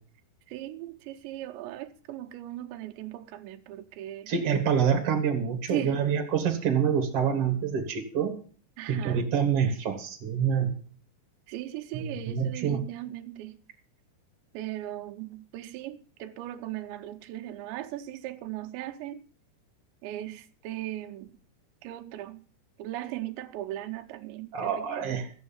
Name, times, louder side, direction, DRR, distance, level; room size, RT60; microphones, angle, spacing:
voice 1, 0.5-4.3 5.7-6.0 8.8-9.2 11.5-13.6 14.5-19.2 20.0-21.3 21.8-22.4 22.8-25.1, right 13 dB, 85° right, 3.2 m, -38 dB
voice 2, 4.3-8.3 8.9-10.7 11.9-12.8 24.5-25.3, right 7 dB, 50° right, 1.9 m, -26 dB
14.5 x 8.0 x 7.0 m
omnidirectional pair, 5.1 m